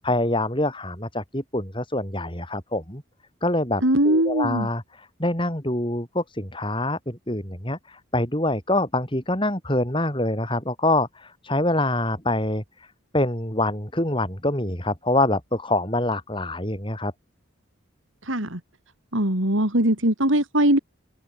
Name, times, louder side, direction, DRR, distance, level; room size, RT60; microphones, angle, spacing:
voice 1, 0.0-3.0 3.4-12.9 13.1-17.1, left 1 dB, 25° left, 6.8 m, -25 dB
voice 2, 3.8-4.7 18.3-18.6 19.1-20.8, right 1 dB, 75° right, 5.2 m, -21 dB
head